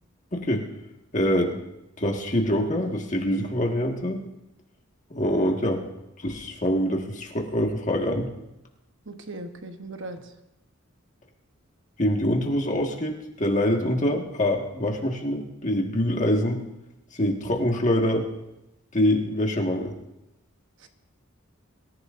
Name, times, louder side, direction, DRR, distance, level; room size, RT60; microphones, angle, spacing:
voice 1, 1.1-1.6 2.0-4.2 5.1-5.8 6.2-8.3 12.0-16.6 17.2-18.3 18.9-19.9, left 1 dB, 35° left, 1 dB, 1.7 m, -24 dB
voice 2, 9.1-10.2 20.8-20.9, right 2 dB, 60° right, 6 dB, 1.1 m, -38 dB
24.0 x 14.5 x 2.6 m, 0.90 s
head